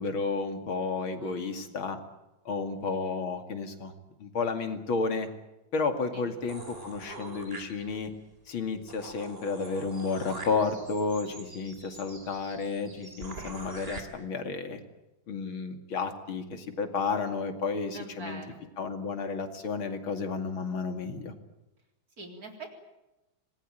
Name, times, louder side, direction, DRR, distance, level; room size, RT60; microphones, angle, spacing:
voice 1, 0.0-2.0 2.4-3.9 4.2-5.3 5.7-8.1 8.5-14.8 15.3-18.4 18.8-21.3, left 4 dB, 85° left, 7 dB, 3.2 m, -32 dB
voice 2, 1.2-1.8 6.1-6.3 17.9-18.6 22.2-22.7, right 3 dB, 45° right, 4 dB, 4.3 m, -44 dB
sound 1, 6.5-8.2 8.6-8.7 8.9-14.0, right 2 dB, 30° right, 3.7 m, -44 dB
26.0 x 19.5 x 9.1 m, 0.98 s
omnidirectional pair, 2.2 m